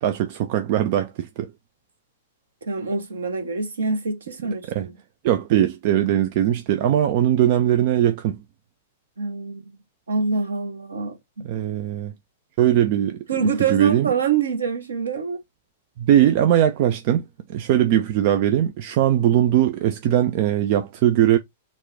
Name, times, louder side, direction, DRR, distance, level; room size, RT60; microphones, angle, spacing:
voice 1, 0.0-1.5 4.7-4.9 5.2-8.4 11.4-12.1 12.6-14.1 16.0-21.4, right 11 dB, 45° right, 0.4 m, -20 dB
voice 2, 2.6-4.9 9.2-9.8 10.1-11.5 13.3-15.4, right 5 dB, 70° right, 1.0 m, -25 dB
4.1 x 2.3 x 3.5 m
figure-of-eight pair, 100°, 0 cm